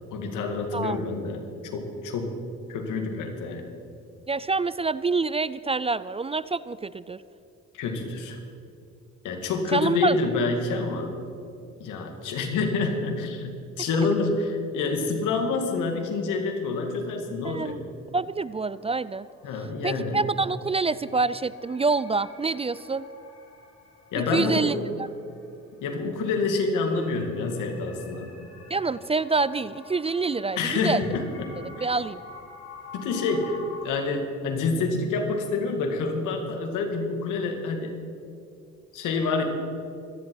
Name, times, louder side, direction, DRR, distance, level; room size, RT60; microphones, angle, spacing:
voice 1, 0.1-1.5 1.7-2.3 2.7-3.6 7.7-8.4 9.2-11.1 11.8-17.8 19.4-20.2 24.1-24.8 25.8-28.3 30.6-31.2 32.9-33.6 33.8-37.9 38.9-39.4, left 4 dB, 90° left, 4 dB, 2.2 m, -27 dB
voice 2, 4.3-7.2 9.7-10.2 13.9-14.1 17.4-17.8 18.1-19.3 19.8-23.1 24.2-24.8 28.7-31.1 31.8-32.2, right 4 dB, 20° right, 17 dB, 0.3 m, -26 dB
sound 1, 18.0-18.1 18.5-33.8, left 3 dB, 55° left, 3.6 m, -48 dB
25.0 x 10.5 x 4.7 m, 2.6 s
cardioid pair, 90°, 30 cm